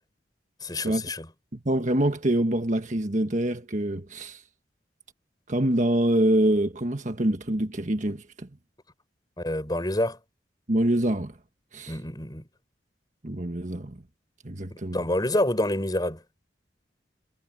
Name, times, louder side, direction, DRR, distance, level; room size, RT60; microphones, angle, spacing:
voice 1, 0.6-1.3 9.4-10.2 11.9-12.4 14.7-16.2, left 1 dB, 20° left, 5.6 m, -27 dB
voice 2, 1.5-4.4 5.5-8.5 10.7-11.3 11.7-11.9 13.2-13.9 14.4-15.0, right 1 dB, 45° right, 1.5 m, -25 dB
head